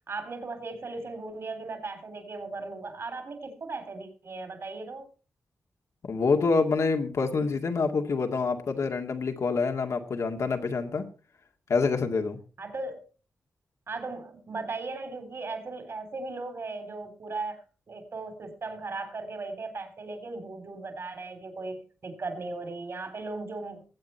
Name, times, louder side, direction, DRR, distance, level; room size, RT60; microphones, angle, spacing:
voice 1, 0.1-5.1 12.6-13.0 13.9-17.6 17.9-23.8, right 3 dB, 50° right, 7 dB, 3.4 m, -37 dB
voice 2, 6.0-11.1 11.7-12.4, left 4 dB, 70° left, 4 dB, 2.1 m, -26 dB
19.5 x 8.1 x 4.4 m, 0.37 s
cardioid pair, 60°, 5 cm